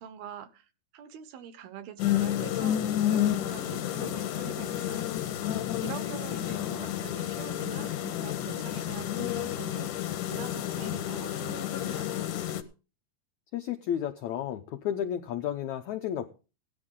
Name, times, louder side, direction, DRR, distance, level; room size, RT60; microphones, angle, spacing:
voice 1, 0.0-5.1 5.8-12.3, right 9 dB, 75° right, 12 dB, 2.8 m, -44 dB
sound 1, 2.0-12.6, left 12 dB, 65° left, 2.3 m, -30 dB
voice 2, 6.5-6.9 13.5-16.3, left 10 dB, 80° left, 6 dB, 1.6 m, -33 dB
17.0 x 10.5 x 3.8 m, 0.33 s
omnidirectional pair, 4.5 m